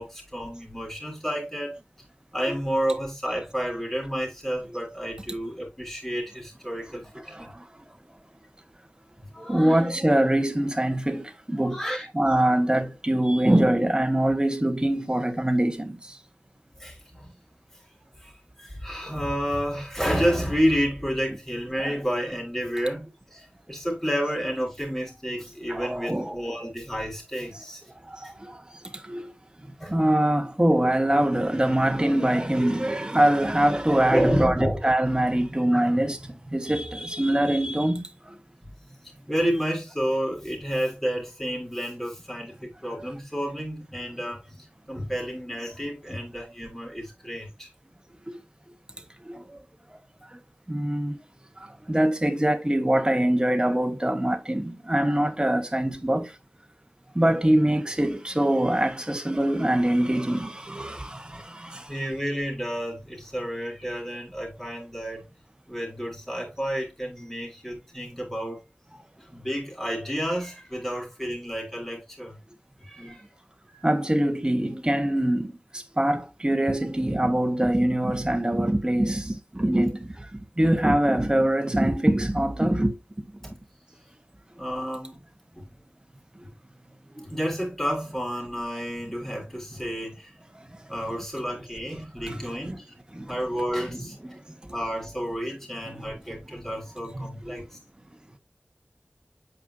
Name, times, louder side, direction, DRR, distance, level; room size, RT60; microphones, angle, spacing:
voice 1, 0.0-1.8 2.3-7.5 9.3-9.8 11.6-12.1 16.8-17.3 18.2-18.3 18.6-27.8 28.2-28.3 29.8-29.9 34.1-34.8 35.7-35.8 39.3-44.6 44.9-47.7 61.9-65.3 65.7-68.6 69.2-72.4 72.8-73.2 73.7-73.9 84.6-85.2 85.6-85.7 87.2-90.3 90.9-92.9 93.3-94.2 94.7-97.7, equal, 10° left, 4.1 m, -30 dB
voice 2, 7.3-7.7 9.4-11.8 12.1-16.2 25.7-26.4 28.1-28.6 28.9-29.3 29.9-38.3 48.3-48.4 49.2-49.6 49.9-50.0 50.3-50.4 50.7-51.2 51.6-56.4 57.1-61.9 73.8-83.0 87.2-87.3 92.3-92.5 93.1-93.4 94.6-94.7 95.9-96.1 96.5-96.6 97.1-97.6, right 1 dB, 20° right, 1.2 m, -24 dB
8.2 x 5.2 x 2.6 m
wide cardioid pair, 50°, 4 cm